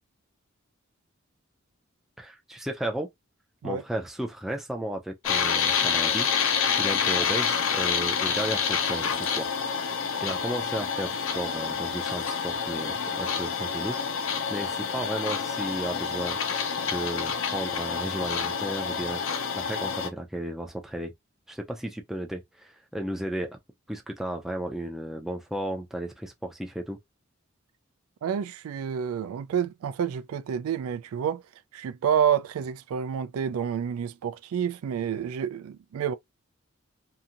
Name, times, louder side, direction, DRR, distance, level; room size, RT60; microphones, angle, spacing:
voice 1, 2.2-3.1 3.6-6.3 6.8-9.5 10.2-14.0 14.5-16.4 16.9-19.2 19.5-21.1 21.5-23.6 23.9-27.0, right 1 dB, ahead, 0.4 m, -34 dB
sound 1, 5.2-20.1, left 6 dB, 65° left, 0.5 m, -28 dB
voice 2, 28.2-31.4 31.7-36.1, right 8 dB, 90° right, 0.3 m, -29 dB
2.8 x 2.5 x 2.4 m
head